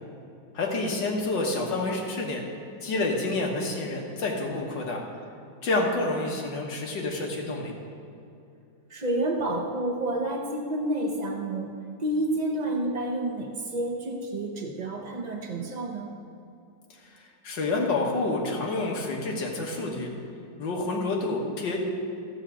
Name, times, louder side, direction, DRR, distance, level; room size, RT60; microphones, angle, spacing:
voice 1, 0.5-2.4 2.8-5.0 5.6-7.7 17.1-20.1 20.6-21.8, left 2 dB, 70° left, 0 dB, 2.0 m, -28 dB
voice 2, 8.9-11.7 12.0-16.1, right 1 dB, 80° right, 2 dB, 0.3 m, -29 dB
14.5 x 4.8 x 8.0 m, 2.6 s
omnidirectional pair, 2.0 m